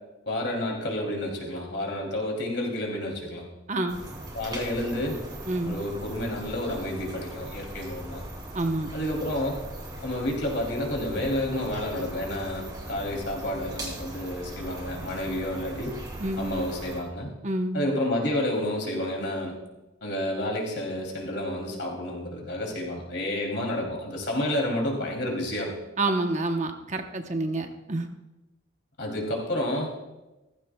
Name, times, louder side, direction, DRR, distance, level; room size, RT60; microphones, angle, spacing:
voice 1, 0.3-3.4 4.3-5.2 5.6-8.3 8.9-9.6 10.0-16.0 16.4-17.4 17.7-19.5 20.0-25.7 29.0-29.9, left 1 dB, 60° left, 0 dB, 2.7 m, -30 dB
sound 1, 3.9-17.0, right 1 dB, 20° right, 2.7 m, -39 dB
voice 2, 8.5-8.9 16.2-16.5 17.4-17.8 26.0-28.1, right 2 dB, 35° right, 5 dB, 0.8 m, -28 dB
16.0 x 15.0 x 2.2 m, 1.1 s
head